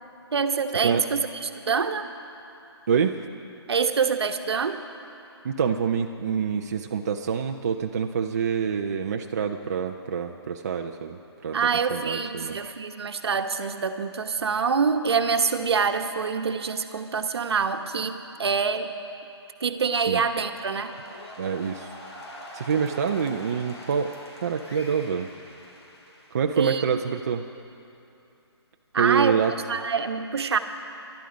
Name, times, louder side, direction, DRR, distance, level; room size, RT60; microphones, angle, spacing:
voice 1, 0.3-2.1 3.7-4.8 11.5-18.9 19.6-20.9 26.6-26.8 28.9-29.4 29.7-30.6, right 5 dB, 70° right, 7 dB, 1.1 m, -25 dB
voice 2, 2.9-3.2 5.4-12.6 20.1-20.2 21.4-21.9 22.5-24.1 24.4-25.3 26.3-27.5 29.0-29.5, right 6 dB, 40° right, 4 dB, 0.5 m, -26 dB
sound 1, 19.8-26.7, left 1 dB, 75° left, 3.9 m, -44 dB
23.0 x 11.5 x 5.2 m, 2.8 s
hypercardioid pair, 170°, 14 cm